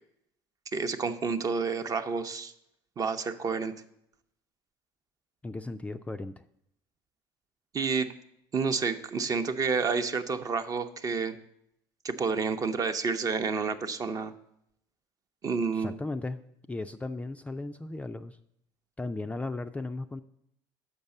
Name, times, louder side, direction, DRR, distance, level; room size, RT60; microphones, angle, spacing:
voice 1, 0.7-2.5 3.0-3.7 7.7-8.1 8.5-11.4 12.0-14.3 15.4-15.9, right 5 dB, 35° right, 8 dB, 0.6 m, -29 dB
voice 2, 5.4-6.4 15.7-16.4 16.7-18.4 19.0-20.2, left 2 dB, 15° left, 8 dB, 0.3 m, -36 dB
6.4 x 5.3 x 7.0 m, 0.76 s
supercardioid pair, 85°, 10 cm